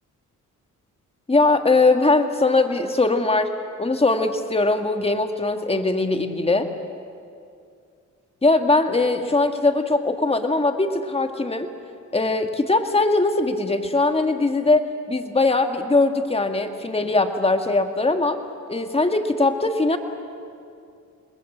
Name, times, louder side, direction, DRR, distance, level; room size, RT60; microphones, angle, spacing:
voice 1, 1.3-3.5 3.8-6.7 8.4-11.7 12.1-18.4 18.7-20.0, left 3 dB, 20° left, 6 dB, 1.9 m, -21 dB
28.0 x 20.5 x 8.1 m, 2.4 s
cardioid pair, 80°, 32 cm